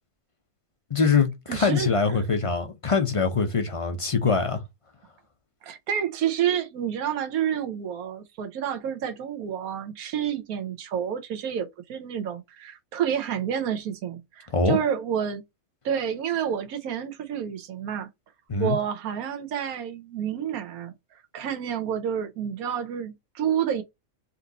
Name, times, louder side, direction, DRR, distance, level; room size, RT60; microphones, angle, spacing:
voice 1, 0.9-4.6 14.5-14.8 18.5-18.8, left 5 dB, 40° left, 0.5 m, -23 dB
voice 2, 1.5-1.9 2.1-2.2 5.6-15.4 15.8-18.1 18.6-20.9 21.3-23.8, right 9 dB, 85° right, 1.3 m, -29 dB
4.2 x 2.7 x 3.9 m
omnidirectional pair, 1.5 m